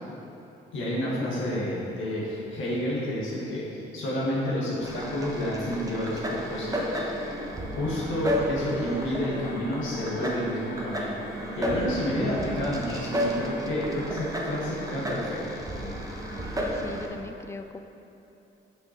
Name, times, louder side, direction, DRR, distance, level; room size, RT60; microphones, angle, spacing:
voice 1, 0.7-3.6 3.9-7.3 7.6-11.1 11.6-15.4, equal, 80° left, -6 dB, 1.6 m, -30 dB
Failing Hard Drives (Glyphx) in Time, 4.8-17.1, equal, 15° right, 1.0 m, -32 dB
voice 2, 16.6-17.8, left 3 dB, 15° left, 8 dB, 0.3 m, -39 dB
6.7 x 5.8 x 4.4 m, 3.0 s
cardioid pair, 90°, 20 cm